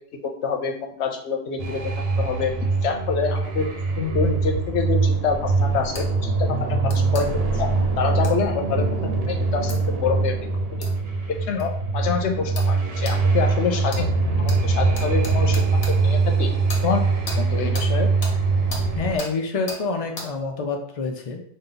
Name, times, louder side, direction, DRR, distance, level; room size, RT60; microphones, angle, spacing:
voice 1, 0.2-1.8 2.2-3.7 4.0-7.3 7.5-8.9 9.2-10.3 10.8-10.9 11.3-14.1 14.4-16.5 16.8-17.0 17.4-18.1, left 5 dB, 85° left, 4 dB, 1.0 m, -26 dB
sound 1, 1.6-19.2, right 3 dB, 65° right, 0.9 m, -23 dB
sound 2, 5.9-6.1 6.9-7.3 8.2-8.4 9.7-9.8 10.8-10.9 11.6-11.7 12.5-12.7 13.0-13.2 13.9-14.0 14.5-14.6 14.9-15.9 16.7-16.8 17.3-17.4 17.7-17.9 18.2-18.3 18.7-18.8 19.2-19.3 19.7-19.8 20.2-20.3, left 3 dB, 65° left, 1.2 m, -34 dB
voice 2, 19.0-21.4, left 3 dB, 40° left, 3 dB, 0.6 m, -27 dB
5.2 x 2.3 x 3.8 m, 0.64 s
omnidirectional pair, 1.1 m